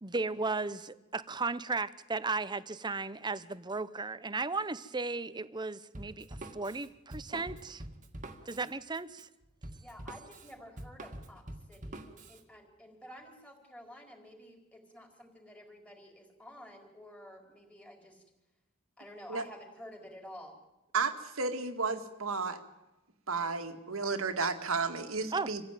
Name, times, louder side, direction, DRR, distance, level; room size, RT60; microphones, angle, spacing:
voice 1, 0.0-7.8 8.5-9.3 25.3-25.5, right 3 dB, 20° right, 15 dB, 0.8 m, -35 dB
Drum kit, 5.9-12.4, right 1 dB, 35° right, 2.0 m, -46 dB
voice 2, 9.8-11.4 11.7-18.2 19.0-20.6, equal, 5° left, 2 dB, 4.4 m, -51 dB
voice 3, 20.9-22.6 23.3-25.6, right 4 dB, 90° right, 7 dB, 2.1 m, -33 dB
26.5 x 16.0 x 9.2 m, 1.0 s
head